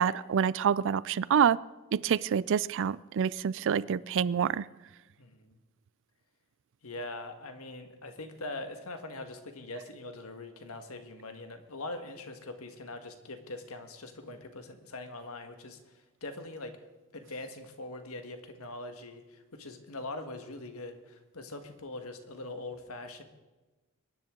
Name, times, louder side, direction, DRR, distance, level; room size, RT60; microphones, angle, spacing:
voice 1, 0.0-1.6 1.9-4.7, right 7 dB, 60° right, 20 dB, 0.4 m, -27 dB
voice 2, 5.2-5.6 6.8-16.8 17.1-23.2, left 2 dB, 70° left, 6 dB, 1.6 m, -42 dB
22.5 x 10.5 x 3.8 m, 1.1 s
head